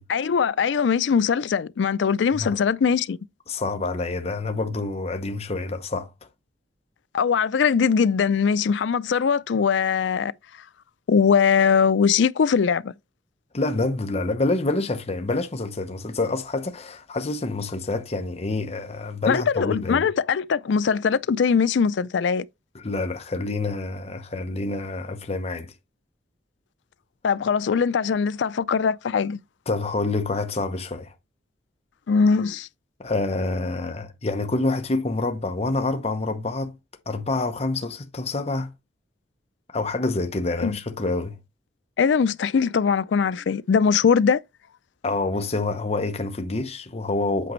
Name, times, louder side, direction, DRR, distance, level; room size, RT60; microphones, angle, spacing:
voice 1, 0.1-3.2 7.1-10.3 11.1-12.9 19.3-22.5 27.2-29.4 32.1-32.7 40.6-40.8 42.0-44.4, left 6 dB, 85° left, 0.4 m, -21 dB
voice 2, 3.5-6.1 13.5-20.1 22.7-25.7 29.7-31.1 33.0-36.7 37.1-38.7 39.7-41.4 45.0-47.5, left 2 dB, 35° left, 0.8 m, -27 dB
8.4 x 5.2 x 3.1 m
head